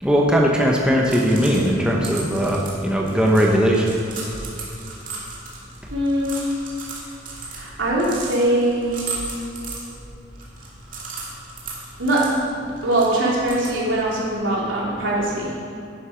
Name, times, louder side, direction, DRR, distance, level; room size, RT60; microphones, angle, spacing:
voice 1, 0.0-4.0, equal, 5° right, -2 dB, 1.0 m, -19 dB
sound 1, 1.0-14.1, right 4 dB, 40° right, 2.4 m, -37 dB
voice 2, 5.9-6.5 7.5-9.1 12.0-12.2 12.8-15.5, right 1 dB, 85° right, -5 dB, 3.3 m, -22 dB
11.0 x 10.5 x 5.2 m, 2.6 s
head